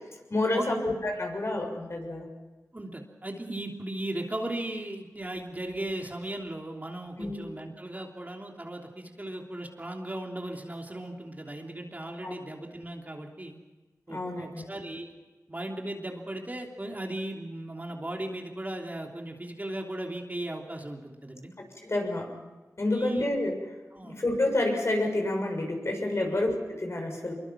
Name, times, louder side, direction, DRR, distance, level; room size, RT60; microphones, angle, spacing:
voice 1, 0.3-2.3 7.2-7.4 12.2-12.3 14.1-14.6 21.8-22.3 22.8-23.5 24.0-27.3, left 2 dB, 50° left, 2 dB, 6.8 m, -29 dB
voice 2, 2.7-13.6 14.1-15.1 15.5-21.5 22.0-22.1 22.9-23.3 23.9-24.2 26.2-26.4, right 1 dB, 25° right, 1 dB, 3.1 m, -37 dB
25.0 x 23.0 x 6.1 m, 1.2 s
wide cardioid pair, 55°, 6 cm